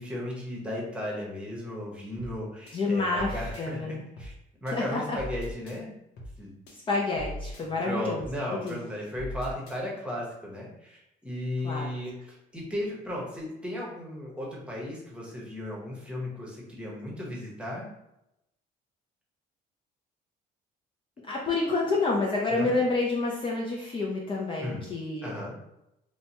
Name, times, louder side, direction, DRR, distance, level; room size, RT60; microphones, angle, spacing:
voice 1, 0.0-4.3 4.6-5.9 6.4-6.6 7.6-17.9 22.5-22.7 24.6-24.8 25.2-25.5, left 1 dB, 5° right, -4 dB, 0.9 m, -35 dB
sound 1, 2.2-2.4 2.7-3.7 4.2-4.4 4.7-5.8 6.2-6.4 6.7-7.7 8.2-8.4 8.7-9.8, equal, 75° left, 0.8 m, -41 dB
voice 2, 2.7-4.0 4.7-5.2 6.9-8.8 11.6-11.9 21.3-25.4, left 3 dB, 30° left, -3 dB, 0.5 m, -29 dB
2.9 x 2.2 x 2.7 m, 0.85 s
cardioid pair, 110°, 17 cm